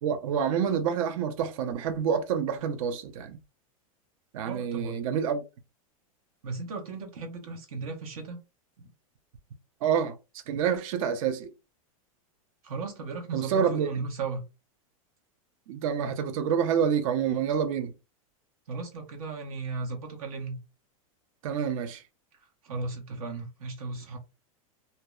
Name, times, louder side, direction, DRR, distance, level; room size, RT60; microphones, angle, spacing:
voice 1, 0.0-3.4 4.3-5.4 9.8-10.1 10.5-11.5 13.3-13.9 15.7-17.9 21.4-22.0, right 7 dB, 70° right, 0.5 m, -27 dB
voice 2, 4.4-5.0 6.4-8.4 8.8-8.9 12.6-14.4 18.7-20.6 22.4-24.2, right 4 dB, 85° right, 1.0 m, -36 dB
2.6 x 2.1 x 2.2 m
supercardioid pair, 125°, 18 cm